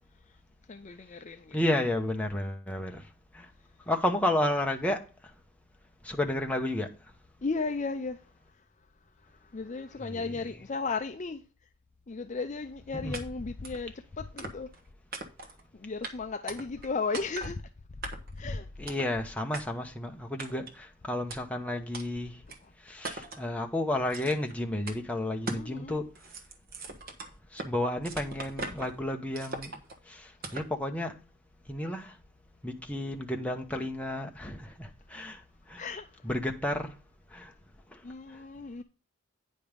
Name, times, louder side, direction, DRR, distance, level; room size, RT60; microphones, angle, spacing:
voice 1, 0.7-1.6 7.4-8.2 8.5-8.6 9.2-11.4 12.1-14.7 15.7-17.6 18.3-18.7 22.5-22.7 25.4-26.0 35.8-36.3 38.0-38.8, left 4 dB, 35° left, 0.5 m, -35 dB
voice 2, 1.5-3.0 3.3-3.5 3.9-5.0 6.0-6.9 10.1-10.2 13.0-13.2 18.8-22.4 22.9-26.0 27.5-29.7 30.1-31.2 31.7-32.1 32.6-35.4 35.7-35.8 36.2-36.9 37.3-37.5, left 1 dB, 5° left, 1.0 m, -31 dB
sound 1, 13.1-13.2 13.6-13.8 14.4-14.8 15.1-15.6 16.0-16.1 16.5-16.9 17.1-17.5 18.0-18.4 18.9-19.1 19.5-19.6 20.4-20.8 21.3-21.4 21.9-22.1 22.5-22.6 23.0-23.5 24.1-24.5 24.9-25.0 25.5-25.7 26.0-27.7 28.0-28.9 29.3-30.0 30.4-30.7, right 2 dB, 45° right, 1.3 m, -40 dB
9.4 x 5.3 x 5.1 m
head